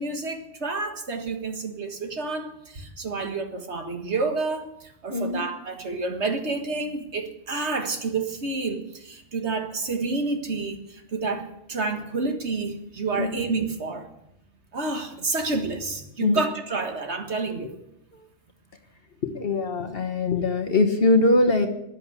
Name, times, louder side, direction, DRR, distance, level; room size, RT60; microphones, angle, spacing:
voice 1, 0.0-14.1 14.7-17.7, right 3 dB, 65° right, 5 dB, 1.9 m, -29 dB
voice 2, 5.1-5.4 13.2-13.3 16.2-16.4 18.1-18.2 19.2-21.7, left 2 dB, 50° left, 4 dB, 1.4 m, -22 dB
14.0 x 10.0 x 8.4 m, 0.84 s
omnidirectional pair, 1.2 m